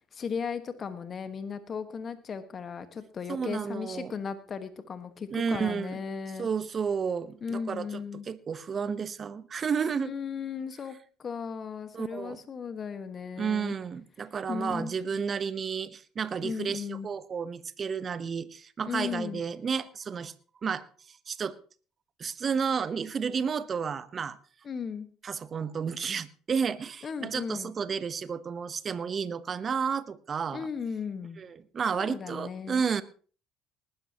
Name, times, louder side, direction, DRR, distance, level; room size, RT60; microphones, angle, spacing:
voice 1, 0.1-6.5 7.4-8.3 10.0-13.7 14.5-14.9 16.4-17.1 18.8-19.4 24.6-25.1 27.0-27.7 30.5-31.4 31.9-32.8, left 6 dB, 40° left, 10 dB, 1.5 m, -36 dB
voice 2, 3.3-4.1 5.3-6.0 6.4-10.1 11.9-12.4 13.4-20.3 20.6-21.6 22.2-24.4 25.2-30.7 31.4-33.0, right 6 dB, 40° right, 15 dB, 1.0 m, -32 dB
19.5 x 12.5 x 3.0 m, 0.39 s
hypercardioid pair, 65°, 0 cm